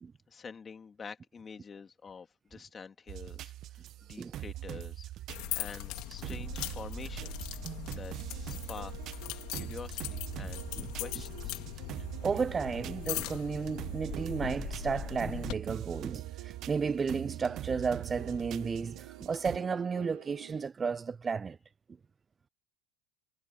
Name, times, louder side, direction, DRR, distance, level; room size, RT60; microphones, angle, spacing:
voice 1, 0.3-3.5 4.1-7.5 8.0-8.9 9.5-11.6, left 5 dB, 30° left, 3.4 m, -47 dB
sound 1, 3.1-19.6, right 14 dB, 50° right, 1.2 m, -42 dB
sound 2, 5.3-15.6, left 22 dB, 65° left, 3.7 m, -40 dB
sound 3, 6.5-20.6, right 20 dB, 75° right, 1.8 m, -51 dB
voice 2, 12.2-21.6, right 5 dB, 25° right, 0.5 m, -33 dB
hypercardioid pair, 80°, 0 cm